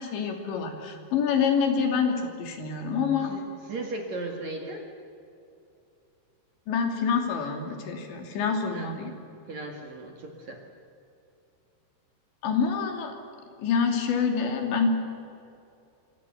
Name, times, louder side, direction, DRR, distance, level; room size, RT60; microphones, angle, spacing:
voice 1, 0.0-3.3 6.7-9.1 12.4-13.1 13.6-14.9, left 6 dB, 75° left, 3 dB, 4.8 m, -26 dB
voice 2, 3.2-4.8 8.7-9.0 9.5-10.6, right 2 dB, 50° right, 2 dB, 2.7 m, -37 dB
25.5 x 25.5 x 7.0 m, 2.7 s
omnidirectional pair, 5.2 m